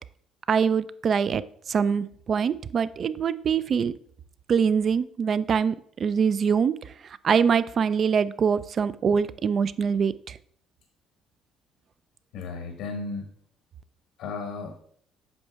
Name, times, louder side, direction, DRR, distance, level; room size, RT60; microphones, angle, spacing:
voice 1, 0.5-1.4 1.7-3.9 4.5-6.7 7.2-10.4, right 6 dB, 45° right, 16 dB, 0.4 m, -24 dB
voice 2, 12.3-13.3 14.2-14.8, left 4 dB, 85° left, 5 dB, 1.0 m, -34 dB
8.0 x 5.5 x 3.5 m, 0.64 s
cardioid pair, 115°, 0 cm